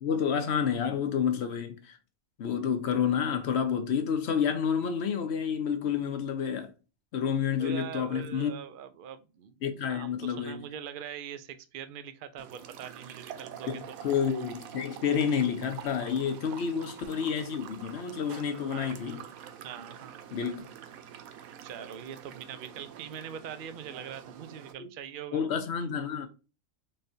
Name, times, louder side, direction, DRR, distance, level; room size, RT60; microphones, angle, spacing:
voice 1, 0.0-2.0 2.4-6.7 7.1-8.5 9.6-10.6 13.7-19.2 20.3-20.7 24.8-24.9 25.3-26.3, left 7 dB, 60° left, 0.9 m, -29 dB
voice 2, 7.6-14.0 16.5-16.6 18.7-19.2 19.6-20.2 21.6-25.4, right 8 dB, 60° right, 0.6 m, -43 dB
sound 1, 12.4-24.7, right 9 dB, 90° right, 1.0 m, -46 dB
4.4 x 3.2 x 2.7 m
omnidirectional pair, 1.4 m